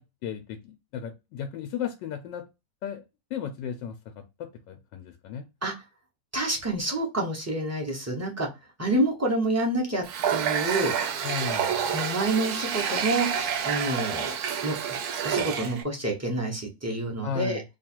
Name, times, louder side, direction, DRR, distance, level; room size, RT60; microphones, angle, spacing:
voice 1, 0.0-2.4 2.8-3.0 3.3-4.0 4.4-5.5 11.2-11.7 17.2-17.6, left 7 dB, 90° left, 6 dB, 1.3 m, -35 dB
voice 2, 6.3-8.5 8.8-10.0 10.3-10.9 11.9-13.3 13.6-14.3 14.6-14.8 15.2-17.6, right 2 dB, 15° right, -1 dB, 0.5 m, -27 dB
Water tap faucet, 10.0-15.8, right 8 dB, 70° right, 1.0 m, -28 dB
3.1 x 2.4 x 4.3 m, 0.24 s
omnidirectional pair, 1.9 m